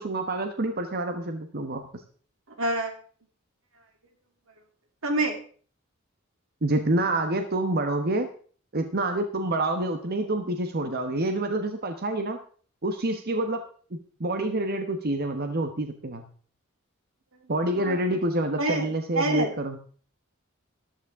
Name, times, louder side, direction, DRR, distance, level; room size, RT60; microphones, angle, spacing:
voice 1, 0.0-1.8 6.6-8.3 8.7-12.4 12.8-13.6 14.2-16.2 17.5-19.8, right 2 dB, 50° right, 6 dB, 1.1 m, -27 dB
voice 2, 2.6-2.9 5.0-5.4 17.7-18.0 18.6-19.5, right 2 dB, 85° right, 3 dB, 2.9 m, -26 dB
14.0 x 12.5 x 3.6 m, 0.44 s
head